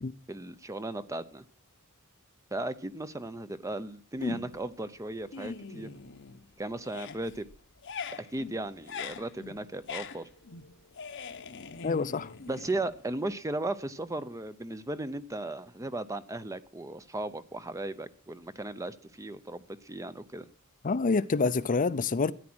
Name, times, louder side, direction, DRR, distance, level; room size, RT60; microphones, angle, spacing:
voice 1, 0.3-1.4 2.5-5.9 6.6-7.4 8.2-10.3 12.5-20.5, right 2 dB, 15° right, 0.6 m, -36 dB
sound 1, 4.2-4.8 5.1-6.5 6.8-13.3, left 5 dB, 55° left, 0.9 m, -42 dB
voice 2, 11.8-12.3 20.8-22.3, left 4 dB, 35° left, 0.5 m, -27 dB
13.5 x 9.7 x 6.2 m
head